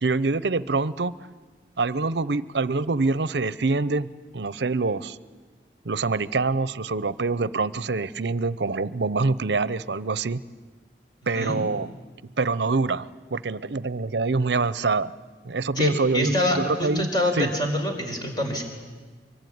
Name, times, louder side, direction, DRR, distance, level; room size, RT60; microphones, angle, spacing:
voice 1, 0.0-1.1 1.8-5.2 5.8-10.4 11.3-11.9 12.4-15.1 15.4-17.1 17.3-17.5, right 3 dB, 75° right, 17 dB, 0.7 m, -25 dB
voice 2, 15.8-18.6, left 1 dB, 25° left, 3 dB, 4.7 m, -25 dB
24.5 x 24.0 x 9.5 m, 1.4 s
head